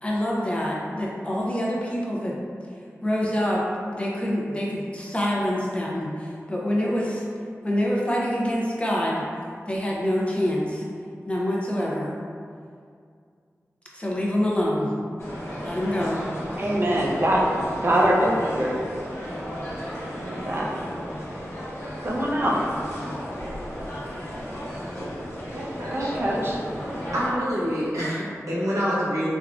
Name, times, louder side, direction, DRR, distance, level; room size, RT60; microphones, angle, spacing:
voice 1, 0.0-2.4 2.6-2.7 3.0-3.6 3.9-7.2 7.6-9.2 9.7-10.9 11.3-12.1 13.9-14.9 15.6-16.2, equal, 20° left, -4 dB, 0.5 m, -26 dB
sound 1, 15.2-27.3, equal, 50° left, 1.0 m, -34 dB
voice 2, 16.6-18.8 20.2-20.7 22.0-22.6 25.9-26.6, equal, 45° right, -3 dB, 0.5 m, -23 dB
voice 3, 25.5-26.1 27.1-29.3, equal, 75° right, -8 dB, 0.8 m, -27 dB
3.4 x 2.3 x 2.4 m, 2.3 s
wide cardioid pair, 60°, 6 cm